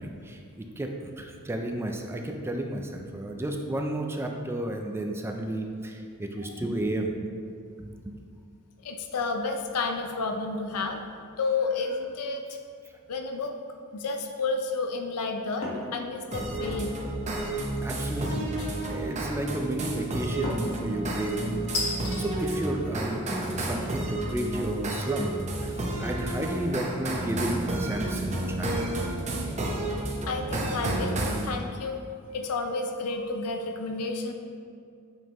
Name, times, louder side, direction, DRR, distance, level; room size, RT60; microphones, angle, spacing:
voice 1, 0.0-7.3 7.8-8.1 17.4-17.5 17.8-18.5 18.8-21.4 22.2-25.3 25.6-25.7 26.0-28.8, right 1 dB, 10° right, 3 dB, 0.4 m, -32 dB
voice 2, 8.8-11.0 11.4-12.5 13.1-13.5 13.9-16.9 30.3-32.0 32.3-34.3, left 3 dB, 90° left, 4 dB, 0.6 m, -31 dB
sound 1, 15.6-15.9 16.4-16.8 18.6-19.1 20.4-20.8 21.7-22.2, left 2 dB, 65° left, 1.5 m, -33 dB
sound 2, 16.3-31.5, right 1 dB, 30° right, 0.8 m, -31 dB
7.1 x 6.0 x 3.0 m, 2.4 s
head